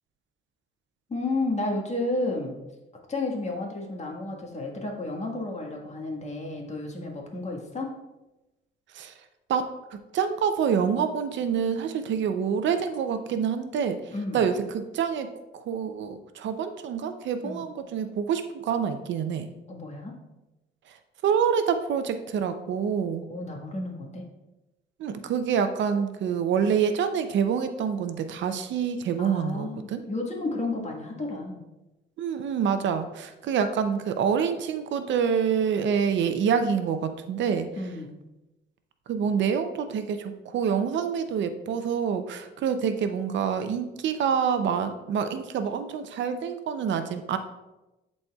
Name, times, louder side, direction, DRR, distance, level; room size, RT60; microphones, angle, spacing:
voice 1, 1.1-2.6 3.1-7.9 14.1-14.5 17.4-17.6 19.7-20.1 23.3-24.3 29.2-31.6 37.7-38.1, left 2 dB, 35° left, 0 dB, 1.5 m, -32 dB
voice 2, 10.1-14.0 14.3-15.3 15.5-19.5 21.2-23.2 25.0-30.0 32.2-37.7 39.1-47.4, right 7 dB, 70° right, 9 dB, 0.6 m, -26 dB
11.0 x 4.2 x 2.3 m, 1.0 s
cardioid pair, 90°, 20 cm